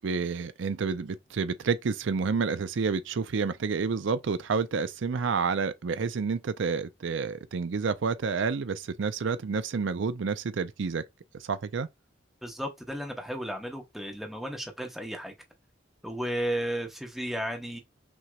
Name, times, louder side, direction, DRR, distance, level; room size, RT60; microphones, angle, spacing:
voice 1, 0.0-11.0 11.3-11.9, right 5 dB, 70° right, 0.5 m, -29 dB
voice 2, 12.4-15.3 16.0-17.8, equal, ahead, 0.9 m, -34 dB
6.1 x 2.8 x 2.3 m
head